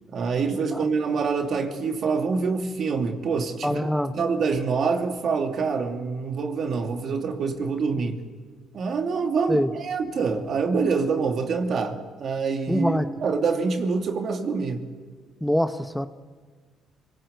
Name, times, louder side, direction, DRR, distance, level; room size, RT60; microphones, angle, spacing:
voice 1, 0.1-3.8 4.1-8.2 8.7-12.9 13.2-14.9, right 5 dB, 60° right, 2.7 m, -26 dB
voice 2, 3.6-4.1 8.0-8.1 9.5-9.7 12.7-13.1 15.4-16.1, equal, 5° left, 1.0 m, -24 dB
26.5 x 18.5 x 8.2 m
supercardioid pair, 75°, 0 cm